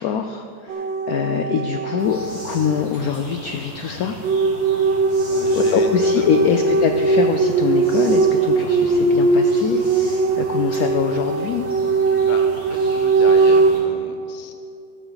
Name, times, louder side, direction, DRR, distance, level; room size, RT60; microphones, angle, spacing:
voice 1, 0.0-4.2 5.5-11.7, left 7 dB, 70° left, 6 dB, 0.8 m, -24 dB
sound 1, 0.7-3.1 4.2-13.7, right 3 dB, 80° right, 1.5 m, -19 dB
sound 2, 2.0-13.8, equal, 35° right, 3.2 m, -39 dB
voice 2, 4.7-5.9 6.2-6.7 12.2-14.5, left 4 dB, 45° left, 5 dB, 0.6 m, -35 dB
14.5 x 12.0 x 4.0 m, 2.6 s
omnidirectional pair, 2.1 m